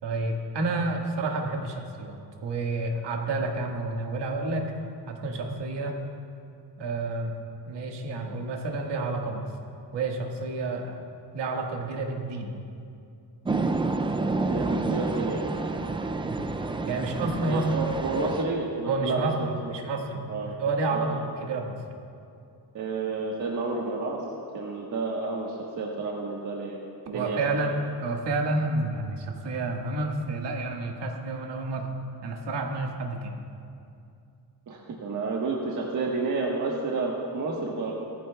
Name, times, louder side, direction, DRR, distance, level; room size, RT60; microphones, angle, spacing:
voice 1, 0.0-4.7 5.1-6.0 6.8-7.3 7.7-9.5 9.9-11.0 11.3-12.5 16.3-16.4 16.9-17.7 18.9-19.3 19.7-21.8 27.1-31.9 32.2-33.4, right 2 dB, 75° right, 1 dB, 1.8 m, -30 dB
sound 1, 13.4-18.4, right 3 dB, 15° right, 0.3 m, -29 dB
voice 2, 14.5-15.5 17.5-19.7 20.3-20.5 20.9-21.2 22.7-24.2 24.5-26.8 27.1-27.7 34.7-37.9, right 3 dB, 45° right, -3 dB, 1.4 m, -30 dB
18.5 x 14.5 x 2.3 m, 2.5 s
cardioid pair, 145°, 43 cm